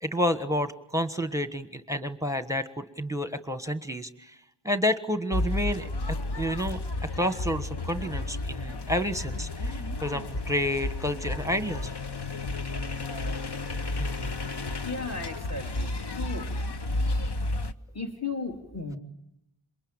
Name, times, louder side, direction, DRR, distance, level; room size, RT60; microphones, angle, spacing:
voice 1, 0.0-4.4 4.6-11.9 14.0-14.3, equal, 5° right, 10 dB, 1.4 m, -30 dB
sound 1, 5.3-17.7, left 2 dB, 55° left, 1.1 m, -32 dB
voice 2, 14.8-16.5 17.9-19.0, left 3 dB, 30° left, 2 dB, 3.2 m, -35 dB
27.0 x 23.0 x 8.9 m, 0.83 s
wide cardioid pair, 55°, 49 cm